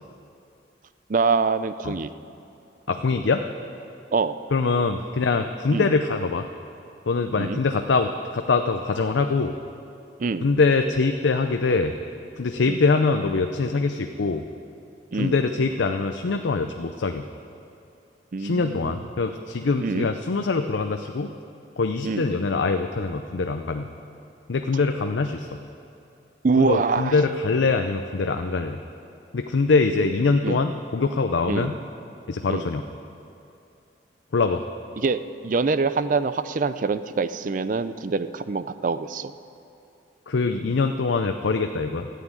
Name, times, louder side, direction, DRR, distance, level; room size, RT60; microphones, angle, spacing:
voice 1, 1.1-2.1 4.1-4.4 5.7-5.9 7.4-7.6 10.2-10.5 12.7-12.8 15.1-15.4 18.3-19.0 19.8-20.1 22.0-22.3 26.4-27.1 30.4-30.6 31.5-31.7 32.5-32.7 35.0-39.3, right 4 dB, 45° right, 13 dB, 0.4 m, -25 dB
voice 2, 2.9-3.4 4.5-6.5 7.1-9.5 10.4-12.0 12.4-14.5 15.1-17.2 18.4-21.3 21.8-23.9 24.5-25.6 26.6-28.8 29.3-31.8 32.3-32.8 34.3-34.6 40.3-42.1, left 4 dB, 85° left, 6 dB, 0.6 m, -23 dB
13.5 x 8.5 x 9.0 m, 2.7 s
head